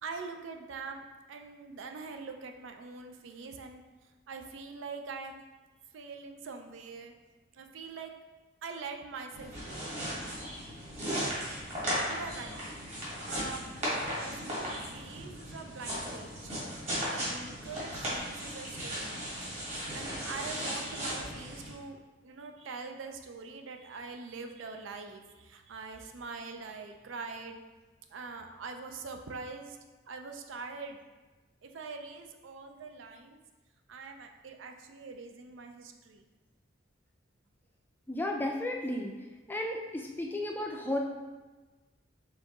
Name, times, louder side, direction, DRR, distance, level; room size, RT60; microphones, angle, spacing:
voice 1, 0.0-3.8 4.3-5.4 5.9-7.1 7.5-8.1 8.6-9.9 11.0-11.5 12.1-12.6 13.3-13.6 14.0-16.5 17.1-19.6 19.9-27.6 28.1-29.8 30.1-31.0 31.6-33.4 33.9-36.3, right 4 dB, 80° right, 5 dB, 0.4 m, -43 dB
sound 1, 9.3-21.7, equal, 35° right, 1.4 m, -36 dB
voice 2, 38.1-39.1 39.5-41.0, left 1 dB, 10° left, 1 dB, 0.3 m, -33 dB
4.6 x 3.4 x 3.0 m, 1.2 s
head